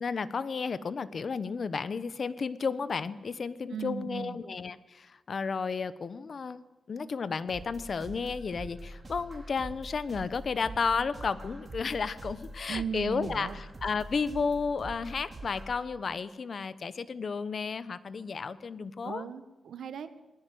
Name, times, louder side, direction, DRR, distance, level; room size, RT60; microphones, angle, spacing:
voice 1, 0.0-6.6 6.9-19.2, left 5 dB, 45° left, 15 dB, 1.0 m, -33 dB
voice 2, 3.7-4.4 12.7-13.6 19.0-20.2, right 6 dB, 80° right, 11 dB, 1.6 m, -37 dB
sound 1, 7.5-15.8, right 1 dB, 30° right, 4.3 m, -45 dB
20.0 x 17.5 x 9.4 m, 1.1 s
wide cardioid pair, 130°, 0 cm